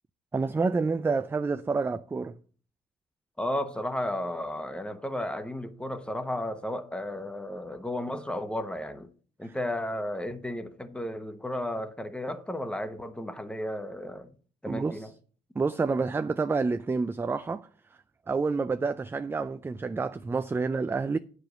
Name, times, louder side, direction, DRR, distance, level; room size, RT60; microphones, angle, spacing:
voice 1, 0.3-2.4 9.4-9.5 14.7-15.1 15.6-17.7 18.3-21.2, right 4 dB, 15° right, 0.4 m, -28 dB
voice 2, 3.4-9.1 9.4-14.3 14.6-15.1, left 1 dB, 5° left, 1.0 m, -33 dB
9.0 x 5.0 x 6.5 m
cardioid pair, 110°, 17 cm